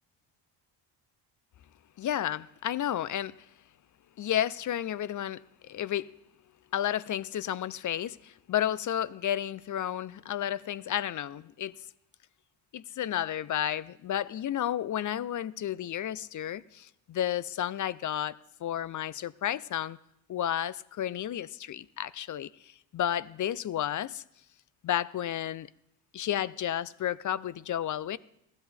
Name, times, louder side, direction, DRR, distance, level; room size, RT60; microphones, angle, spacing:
voice 1, 2.0-3.3 4.2-6.1 6.7-11.7 12.7-18.4 18.6-20.0 20.3-22.5 22.9-24.2 24.8-25.7 26.1-28.2, left 11 dB, 40° left, 0.5 m, -32 dB
15.5 x 12.0 x 4.3 m
supercardioid pair, 65°, 48 cm